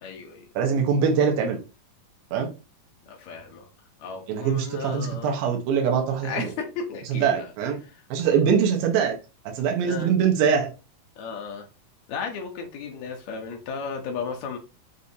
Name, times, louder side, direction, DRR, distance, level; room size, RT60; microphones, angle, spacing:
voice 1, 0.0-0.4 3.1-3.7 4.0-5.3 6.2-7.5 7.8-8.0 9.8-10.1 11.2-11.7 12.1-14.6, left 5 dB, 80° left, 1.6 m, -34 dB
voice 2, 0.6-1.6 2.3-2.5 4.3-6.5 7.1-7.8 8.1-9.2 9.4-10.7, right 7 dB, 80° right, 2.7 m, -23 dB
6.8 x 2.6 x 2.7 m
omnidirectional pair, 4.3 m